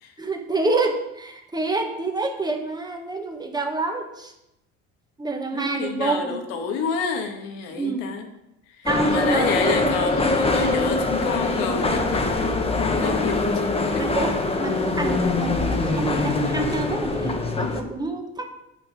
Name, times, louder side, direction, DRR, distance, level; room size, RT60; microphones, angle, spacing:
voice 1, 0.2-4.3 5.2-6.4 7.7-8.0 8.8-9.9 14.0-18.5, right 3 dB, 15° right, 3 dB, 1.4 m, -27 dB
voice 2, 5.5-8.3 8.8-14.3, left 5 dB, 80° left, 4 dB, 1.6 m, -29 dB
sound 1, 8.9-17.8, left 3 dB, 20° left, 1.2 m, -23 dB
9.2 x 6.1 x 5.2 m, 0.86 s
supercardioid pair, 95°, 31 cm